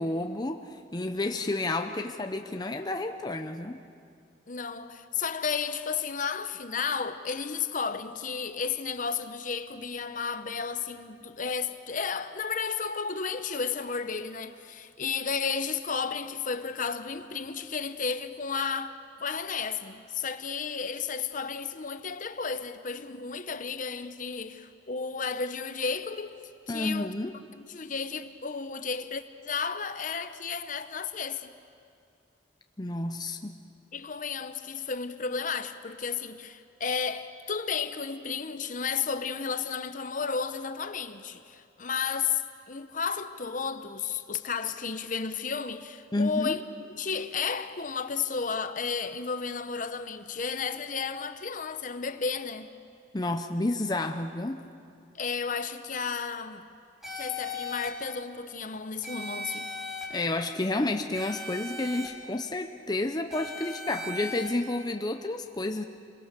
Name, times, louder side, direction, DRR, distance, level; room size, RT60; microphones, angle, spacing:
voice 1, 0.0-3.8 26.7-27.4 32.8-33.5 46.1-46.6 53.1-54.6 60.1-65.8, left 2 dB, 20° left, 0.7 m, -30 dB
voice 2, 4.5-27.1 27.5-31.5 33.9-42.4 42.7-46.6 47.0-52.7 55.1-56.7 57.1-59.7, left 5 dB, 45° left, 0.9 m, -33 dB
sound 1, 57.0-57.9 59.0-60.0 61.1-62.1 63.3-64.5, left 3 dB, ahead, 3.5 m, -37 dB
28.0 x 22.0 x 6.8 m
head